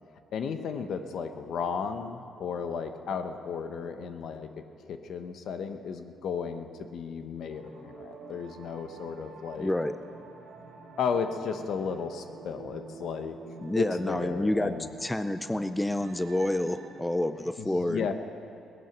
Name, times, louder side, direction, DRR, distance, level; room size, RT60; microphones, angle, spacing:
voice 1, 0.3-4.5 4.9-9.7 11.0-13.4 13.7-14.9 17.6-18.1, left 6 dB, 70° left, 7 dB, 1.0 m, -34 dB
sound 1, 7.5-16.9, right 3 dB, 80° right, 2.7 m, -48 dB
voice 2, 9.6-9.9 13.6-18.1, left 1 dB, 10° left, 11 dB, 0.5 m, -29 dB
18.0 x 11.0 x 6.1 m, 2.5 s
cardioid pair, 90°, 0 cm